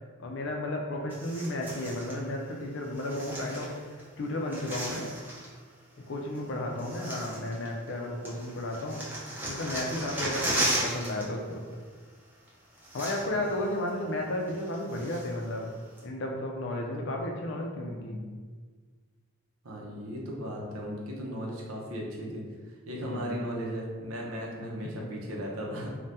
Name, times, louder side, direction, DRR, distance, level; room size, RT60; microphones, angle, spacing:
voice 1, 0.2-3.7 4.2-5.1 6.1-9.0 9.5-11.6 12.9-15.7 16.0-18.2 22.9-23.4, left 1 dB, 55° left, 0 dB, 0.4 m, -33 dB
sound 1, 1.1-2.2 3.0-4.0 4.3-5.5 6.4-6.5 6.8-8.0 8.3-11.3 11.5-11.7 12.5-12.6 12.8-13.5 13.9-14.0 14.5-15.5 16.0-16.1, right 1 dB, 10° right, 0.4 m, -35 dB
voice 2, 6.4-6.9 13.3-13.4 17.8-18.3 19.6-25.9, equal, 80° right, -2 dB, 0.6 m, -37 dB
2.7 x 2.2 x 3.3 m, 1.5 s
head